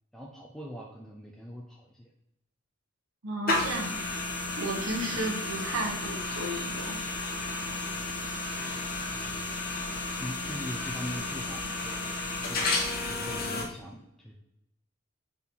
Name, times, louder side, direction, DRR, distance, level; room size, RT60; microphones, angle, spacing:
voice 1, 0.1-2.1 5.1-5.3 10.2-12.7 13.1-14.3, equal, ahead, -2 dB, 0.5 m, -42 dB
voice 2, 3.2-4.0 4.6-7.0, right 2 dB, 85° right, 1 dB, 1.4 m, -33 dB
sound 1, 3.5-13.6, left 2 dB, 45° left, 1.1 m, -32 dB
5.5 x 4.0 x 4.3 m, 0.87 s
head